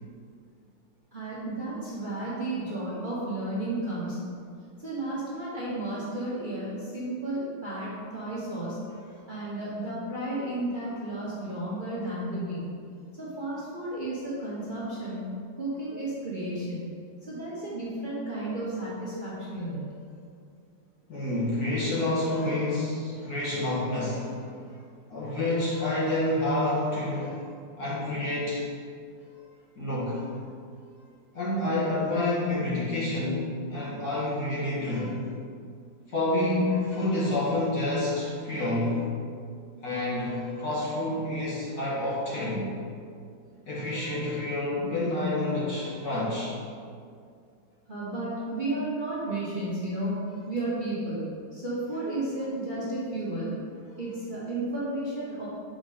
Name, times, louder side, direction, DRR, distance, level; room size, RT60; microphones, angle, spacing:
voice 1, 1.1-4.3 4.8-8.8 9.2-12.7 13.1-15.3 15.6-16.8 17.2-19.9 47.9-50.1 50.5-51.2 51.5-53.5 54.0-55.5, right 1 dB, 30° right, -9 dB, 1.0 m, -33 dB
voice 2, 21.1-24.5 25.1-27.5 27.8-28.7 29.8-30.3 31.3-35.3 36.1-39.1 39.8-42.7 43.7-46.6, left 1 dB, 55° left, -7 dB, 2.0 m, -28 dB
5.1 x 4.3 x 5.5 m, 2.3 s
omnidirectional pair, 2.1 m